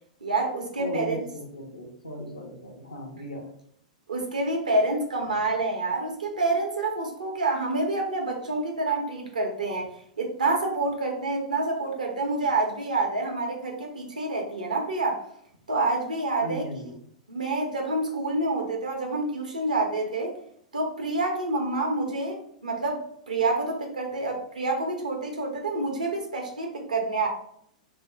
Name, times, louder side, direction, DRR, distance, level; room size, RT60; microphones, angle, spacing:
voice 1, 0.2-1.2 4.1-9.9 10.2-15.2 15.7-16.7 17.3-20.4 20.7-23.0 23.3-27.3, right 2 dB, 85° right, 2 dB, 0.8 m, -27 dB
voice 2, 0.8-3.5 16.4-16.9, equal, 85° left, -1 dB, 0.7 m, -36 dB
2.7 x 2.1 x 3.3 m, 0.68 s
figure-of-eight pair, 100°, 4 cm